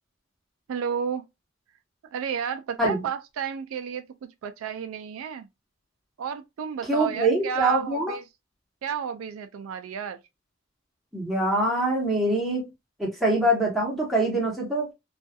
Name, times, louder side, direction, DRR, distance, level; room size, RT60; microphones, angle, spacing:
voice 1, 0.7-1.3 2.1-5.5 6.2-8.2 8.8-10.2 14.4-14.5, right 7 dB, 85° right, 0.3 m, -32 dB
voice 2, 6.8-8.1 11.1-12.7 13.0-14.9, right 1 dB, ahead, 0.9 m, -24 dB
2.4 x 2.3 x 2.5 m
head